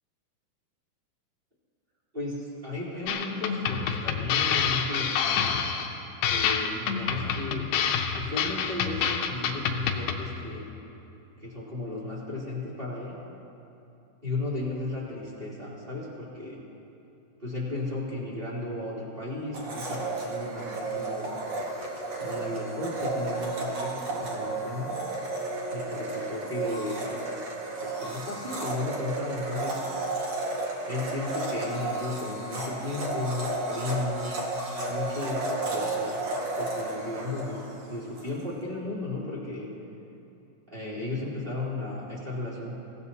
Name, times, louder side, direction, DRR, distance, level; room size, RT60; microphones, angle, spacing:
voice 1, 2.1-5.6 6.2-7.7 8.1-10.8 11.4-13.1 14.2-16.6 17.4-21.3 22.1-24.9 25.7-27.3 27.8-29.8 30.9-34.4 34.9-36.3 36.5-39.7 40.7-42.7, left 2 dB, 15° right, -7 dB, 2.8 m, -34 dB
sound 1, 3.1-10.2, left 7 dB, 75° left, 2.1 m, -27 dB
Domestic sounds home sounds, 19.5-38.3, right 2 dB, 50° right, 2.2 m, -33 dB
23.5 x 16.0 x 2.9 m, 2.8 s
omnidirectional pair, 4.9 m